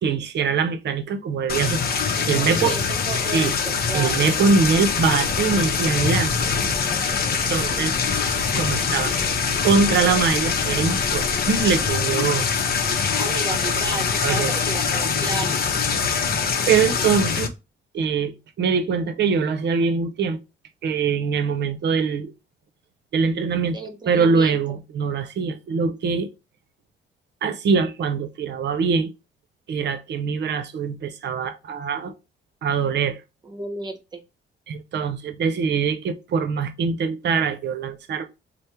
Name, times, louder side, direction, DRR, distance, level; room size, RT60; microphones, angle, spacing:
voice 1, 0.0-2.8 3.3-3.5 3.9-6.3 7.5-7.9 8.6-9.2 9.6-12.5 14.2-14.5 16.7-17.5 17.9-20.4 20.8-22.3 23.1-23.8 24.0-26.3 27.4-29.1 29.7-32.1 32.6-33.2 34.7-38.3, right 5 dB, 60° right, 0.7 m, -23 dB
sound 1, 1.5-17.5, left 6 dB, 50° left, 0.7 m, -23 dB
voice 2, 2.1-4.1 13.1-15.5 23.7-24.6 33.4-34.2, right 2 dB, 20° right, 0.9 m, -33 dB
sound 2, 4.6-11.9, left 1 dB, 10° left, 0.6 m, -37 dB
3.4 x 2.1 x 4.2 m
cardioid pair, 90°, 20 cm